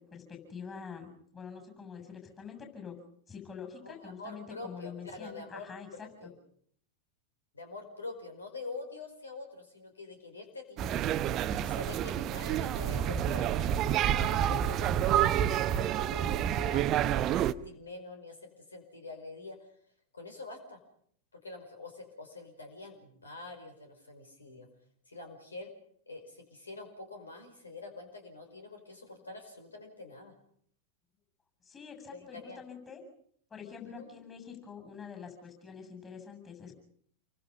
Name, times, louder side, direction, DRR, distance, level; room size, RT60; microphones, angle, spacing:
voice 1, 0.1-3.0 3.3-6.1 31.6-33.0 33.5-36.8, left 6 dB, 20° left, 5 dB, 7.6 m, -46 dB
voice 2, 3.8-6.3 7.5-11.2 11.6-13.5 13.9-19.6 20.1-20.8 21.3-24.7 25.1-25.7 26.1-30.3 32.1-32.6 33.9-34.1, left 2 dB, 75° left, 5 dB, 5.2 m, -46 dB
sound 1, 10.8-17.5, right 10 dB, 35° right, 0.9 m, -28 dB
28.5 x 24.0 x 5.5 m, 0.63 s
figure-of-eight pair, 90°, 0 cm